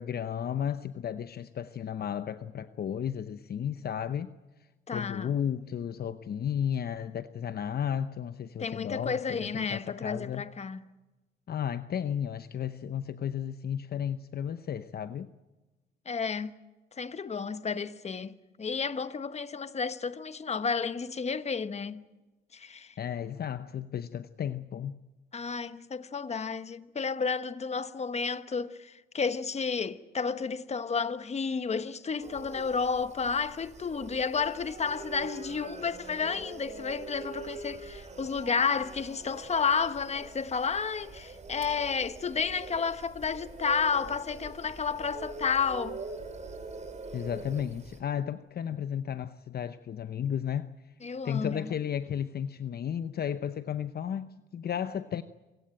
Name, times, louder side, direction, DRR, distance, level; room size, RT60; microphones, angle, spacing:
voice 1, 0.0-4.3 4.9-10.4 11.5-15.3 23.0-25.0 47.1-50.7 51.2-55.2, left 9 dB, 50° left, 0.8 m, -33 dB
voice 2, 4.9-5.3 8.6-10.8 16.1-16.5 17.0-22.0 22.5-22.9 25.3-46.0 51.0-51.7, left 5 dB, 35° left, 1.1 m, -31 dB
sound 1, 32.2-48.0, right 4 dB, 35° right, 4.5 m, -44 dB
26.5 x 17.0 x 8.9 m
cardioid pair, 90°, 20 cm